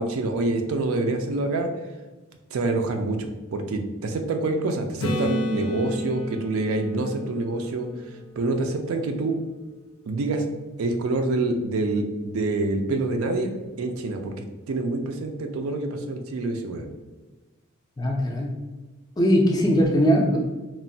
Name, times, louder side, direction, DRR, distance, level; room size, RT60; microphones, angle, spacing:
voice 1, 0.0-1.7 2.5-7.9 8.4-9.4 10.1-10.4 10.8-14.3 14.7-16.9, right 2 dB, 85° right, 5 dB, 0.4 m, -26 dB
Acoustic guitar / Strum, 5.0-8.8 13.6-13.7, left 1 dB, 85° left, 0.4 m, -31 dB
voice 2, 18.0-18.6 19.2-20.5, equal, 20° left, 1 dB, 0.3 m, -20 dB
3.0 x 2.1 x 2.6 m, 1.2 s
head